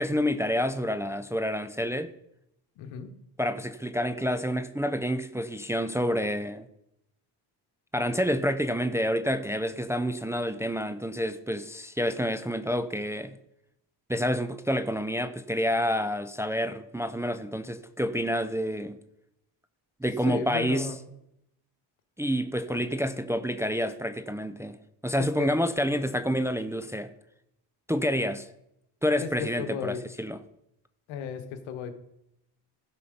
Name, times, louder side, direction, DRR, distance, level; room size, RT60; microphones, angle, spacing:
voice 1, 0.0-2.1 3.4-6.7 7.9-13.3 14.1-19.0 20.0-20.9 22.2-24.8 25.0-27.1 27.9-28.5 29.0-30.4, equal, 5° right, 0.4 m, -28 dB
voice 2, 2.8-3.1 20.3-21.0 22.7-22.8 25.2-25.5 25.8-26.3 29.2-30.0 31.1-31.9, left 8 dB, 85° left, 1.3 m, -35 dB
15.5 x 5.6 x 5.1 m
cardioid pair, 110°, 46 cm